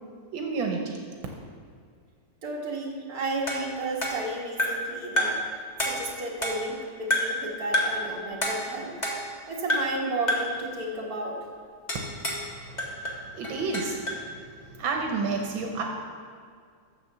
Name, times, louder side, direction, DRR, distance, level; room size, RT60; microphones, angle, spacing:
voice 1, 0.3-1.0 12.2-14.0 14.7-15.9, right 4 dB, 80° right, 2 dB, 1.7 m, -31 dB
voice 2, 2.4-5.4 5.8-8.9 9.5-11.4, right 2 dB, 50° right, -2 dB, 2.0 m, -32 dB
sound 1, 3.5-4.9 5.2-5.5 5.8-6.8 7.1-7.4 7.7-8.1 8.4-9.4 9.7-10.0 10.3-10.6 11.9-12.5 12.8-14.3, left 1 dB, 25° left, 1.3 m, -29 dB
9.3 x 7.2 x 6.7 m, 2.1 s
omnidirectional pair, 2.1 m